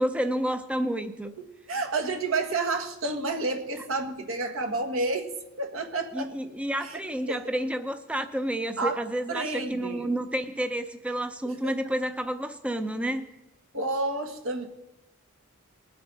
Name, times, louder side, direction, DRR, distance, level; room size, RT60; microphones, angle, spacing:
voice 1, 0.0-1.3 6.1-13.3, right 1 dB, 5° right, 8 dB, 0.5 m, -30 dB
voice 2, 1.7-5.3 5.6-6.3 6.8-7.0 7.3-7.4 8.8-9.0 9.3-10.1 11.6-11.7 13.7-14.7, right 3 dB, 75° right, 4 dB, 1.6 m, -30 dB
20.5 x 7.7 x 4.0 m, 0.97 s
head